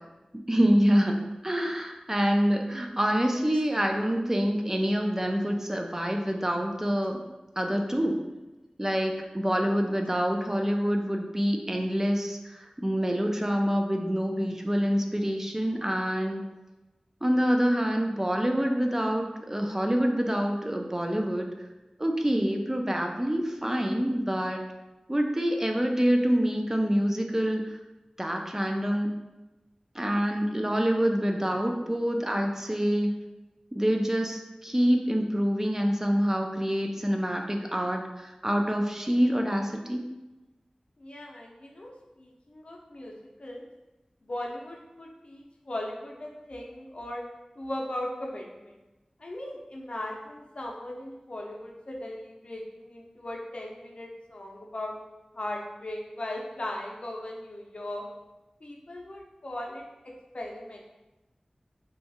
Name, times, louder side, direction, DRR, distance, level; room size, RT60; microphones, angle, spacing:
voice 1, 0.3-1.2 1.4-7.2 7.6-8.2 8.8-16.4 17.2-21.5 22.0-24.6 25.1-27.7 28.2-29.1 29.9-33.1 33.7-40.0, equal, 20° right, 3 dB, 0.4 m, -26 dB
voice 2, 41.0-41.9 42.2-43.1 43.4-43.6 44.3-47.2 47.6-48.7 49.2-54.9 55.3-58.1 58.6-60.8, left 1 dB, 60° left, -1 dB, 0.6 m, -38 dB
2.6 x 2.4 x 4.0 m, 1.1 s
wide cardioid pair, 55°, 2 cm